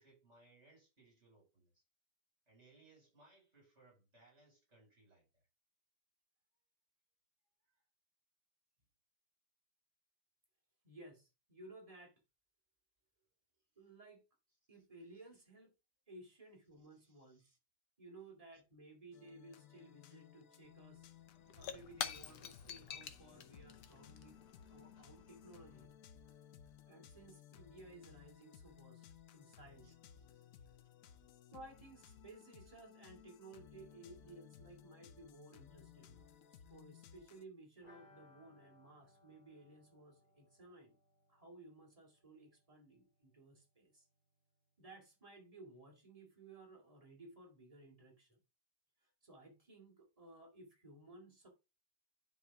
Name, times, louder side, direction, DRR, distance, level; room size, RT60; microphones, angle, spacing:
voice 1, 0.0-1.8 2.5-5.4 7.7-7.8 30.5-30.7, right 2 dB, 40° right, 5.9 m, -67 dB
voice 2, 10.8-12.2 13.8-14.2 14.7-15.7 16.1-17.6 18.0-21.1 21.5-25.9 26.9-29.1 29.3-30.5 31.5-41.0 41.3-44.1 44.8-48.4 49.2-51.5, right 2 dB, 20° right, 2.5 m, -58 dB
sound 1, 19.1-37.4, left 9 dB, 60° left, 1.0 m, -60 dB
Shatter / Crushing, 20.6-20.7 21.0-25.8, left 8 dB, 80° left, 1.5 m, -48 dB
sound 2, 37.8-43.4 43.7-43.8 44.1-44.2, left 2 dB, 25° left, 3.1 m, -68 dB
10.5 x 4.6 x 3.5 m
omnidirectional pair, 1.8 m